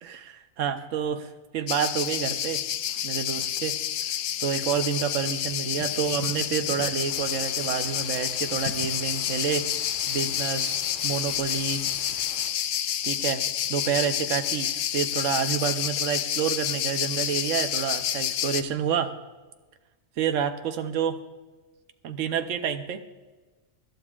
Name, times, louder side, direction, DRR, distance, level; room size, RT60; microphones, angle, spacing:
voice 1, 0.0-2.6 3.0-3.8 4.4-9.6 10.1-12.2 13.0-13.4 13.7-19.1 20.2-21.2 22.0-23.0, right 7 dB, 70° right, 7 dB, 1.2 m, -29 dB
sound 1, 1.7-18.6, left 10 dB, 75° left, 0.9 m, -29 dB
sound 2, 7.0-12.5, equal, 40° left, 5.2 m, -46 dB
25.0 x 12.0 x 2.4 m, 1.3 s
omnidirectional pair, 1.4 m